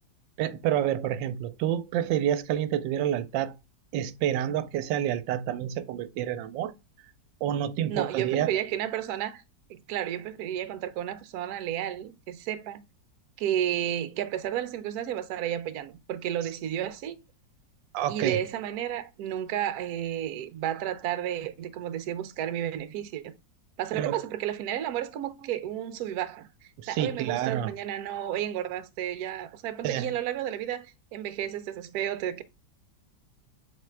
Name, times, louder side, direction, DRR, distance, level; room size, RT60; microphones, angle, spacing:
voice 1, 0.4-3.6 3.9-6.8 7.4-8.5 17.9-18.4 23.9-24.2 26.8-27.7 29.8-30.1, right 11 dB, 85° right, 1.3 m, -28 dB
voice 2, 7.9-9.4 9.7-12.8 13.4-17.2 18.1-23.3 23.8-30.9 31.1-32.4, right 11 dB, 70° right, 1.0 m, -32 dB
4.3 x 3.7 x 3.2 m
omnidirectional pair, 2.0 m